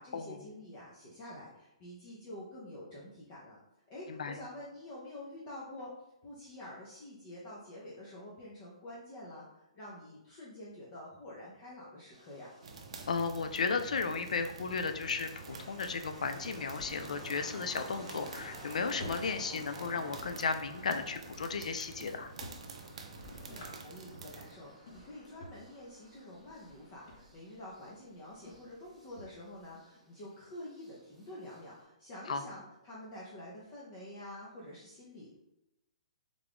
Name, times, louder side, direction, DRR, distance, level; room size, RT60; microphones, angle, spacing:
voice 1, 0.0-3.6 3.9-5.9 6.2-12.5 23.2-35.4, left 1 dB, 25° left, -6 dB, 0.5 m, -48 dB
sound 1, 12.1-31.8, equal, ahead, 0.9 m, -54 dB
sound 2, 12.6-24.5, right 4 dB, 55° right, 0.5 m, -49 dB
voice 2, 13.1-22.3 32.3-32.4, left 5 dB, 80° left, 8 dB, 0.4 m, -34 dB
Drawer open or close, 15.3-29.8, left 1 dB, 40° left, 0.9 m, -54 dB
3.6 x 2.3 x 3.4 m, 0.90 s
hypercardioid pair, 170°, 4 cm